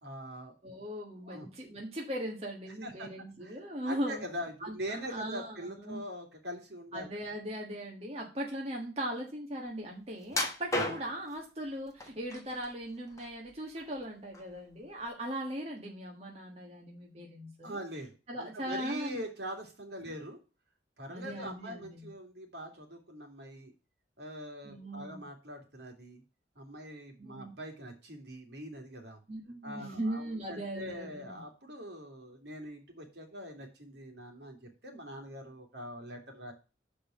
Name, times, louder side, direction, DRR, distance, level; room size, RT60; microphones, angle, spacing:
voice 1, 0.0-0.5 1.3-1.5 2.8-3.1 3.4-7.1 17.6-20.4 21.0-23.7 24.2-26.2 26.6-29.2 29.6-36.5, equal, 70° right, 3 dB, 2.6 m, -43 dB
voice 2, 0.6-4.2 4.6-6.0 6.9-17.8 18.3-19.2 21.1-22.1 24.6-25.2 27.2-27.5 29.3-31.3, right 1 dB, 35° right, -1 dB, 1.5 m, -39 dB
sound 1, 10.3-11.3 12.0-12.7 13.1-14.0 14.3-14.5 15.1-15.2, left 2 dB, 20° left, 1.4 m, -34 dB
6.2 x 5.2 x 6.9 m, 0.32 s
head